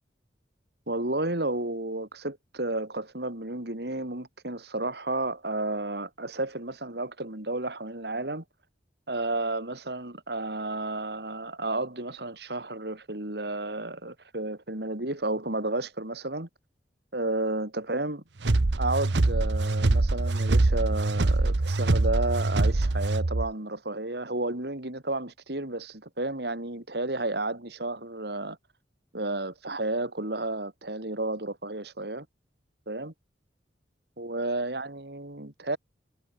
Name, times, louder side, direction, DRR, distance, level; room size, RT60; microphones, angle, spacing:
voice 1, 0.9-8.4 9.1-16.5 17.1-18.2 18.8-28.6 29.1-32.3 32.9-33.1 34.2-35.8, right 2 dB, 65° right, 3.1 m, -32 dB
sound 1, 18.4-23.5, right 2 dB, 80° right, 0.9 m, -24 dB
head